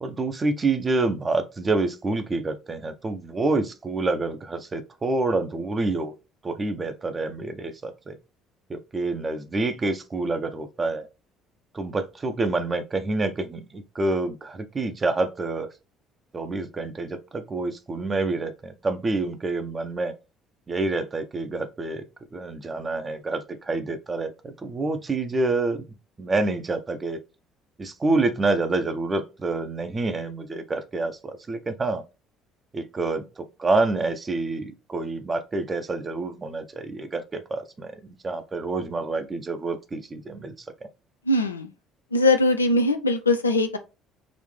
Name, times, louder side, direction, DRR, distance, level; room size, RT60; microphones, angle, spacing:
voice 1, 0.0-6.1 6.4-8.2 8.7-11.1 11.7-15.7 16.3-20.1 20.7-22.0 22.3-25.8 26.2-27.2 27.8-32.0 32.7-37.9 38.2-40.5, right 3 dB, 30° right, 0.7 m, -27 dB
voice 2, 41.3-41.7 42.1-43.8, left 2 dB, 90° left, 0.3 m, -21 dB
4.1 x 2.6 x 3.2 m
figure-of-eight pair, 55°, 0 cm